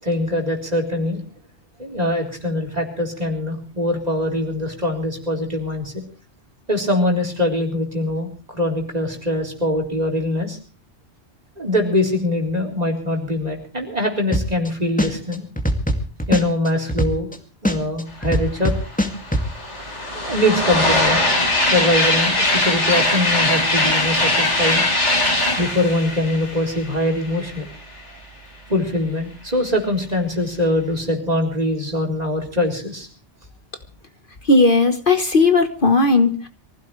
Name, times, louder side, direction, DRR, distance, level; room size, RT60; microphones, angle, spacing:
voice 1, 0.0-1.2 1.8-5.9 6.7-10.6 11.6-15.5 16.3-17.3 17.6-18.8 20.1-21.3 21.6-24.8 25.6-27.7 28.7-33.1, left 1 dB, 35° right, 1 dB, 4.2 m, -22 dB
sound 1, 14.3-14.7 15.0-17.3 17.6-19.4, equal, 5° left, 2.2 m, -21 dB
sound 2, 18.6-18.7 18.9-27.6, left 1 dB, 80° left, 4.5 m, -20 dB
voice 2, 34.5-36.5, left 3 dB, 50° left, 8 dB, 1.5 m, -16 dB
24.5 x 16.0 x 3.2 m, 0.36 s
omnidirectional pair, 1.2 m